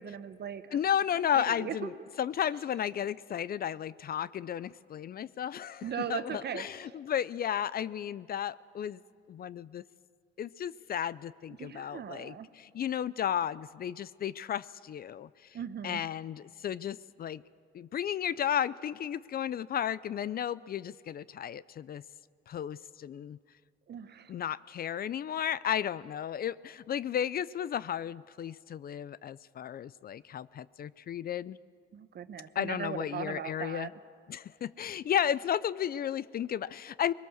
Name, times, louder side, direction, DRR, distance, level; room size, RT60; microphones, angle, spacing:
voice 1, 0.0-0.8 1.4-1.9 5.8-6.6 11.6-12.5 15.5-16.1 23.9-24.3 31.9-33.9, right 8 dB, 55° right, 11 dB, 1.1 m, -39 dB
voice 2, 0.7-9.0 9.3-9.8 10.4-15.6 15.8-17.4 17.7-22.0 22.5-23.4 24.3-31.6 32.6-33.9 34.3-37.1, left 9 dB, 50° left, 19 dB, 0.5 m, -33 dB
22.5 x 21.0 x 6.5 m, 2.1 s
cardioid pair, 90°, 20 cm